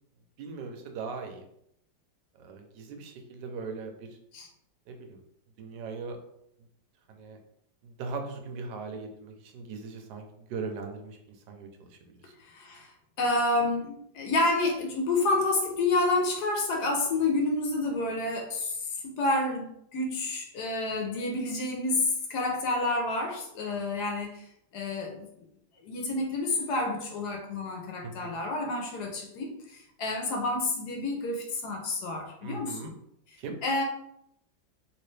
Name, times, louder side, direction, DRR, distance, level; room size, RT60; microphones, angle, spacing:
voice 1, 0.4-1.5 2.4-4.1 4.9-5.2 5.6-6.2 7.1-7.4 7.8-12.3 28.0-28.4 32.4-32.9 33.4-33.6, right 4 dB, 70° right, 4 dB, 1.2 m, -39 dB
voice 2, 12.5-12.9 13.2-24.4 24.7-25.3 25.8-32.9 33.6-33.8, left 2 dB, 65° left, 1 dB, 1.1 m, -29 dB
3.2 x 2.9 x 3.2 m, 0.75 s
omnidirectional pair, 2.1 m